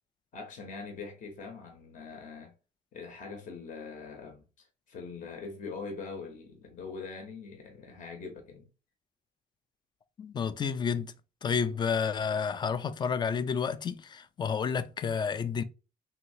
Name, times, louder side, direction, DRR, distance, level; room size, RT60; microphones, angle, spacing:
voice 1, 0.3-2.5 2.9-8.7, left 4 dB, 50° left, 0.9 m, -43 dB
voice 2, 10.2-11.1 11.4-15.6, left 6 dB, 25° left, 0.3 m, -30 dB
3.2 x 2.7 x 2.7 m
cardioid pair, 110°, 17 cm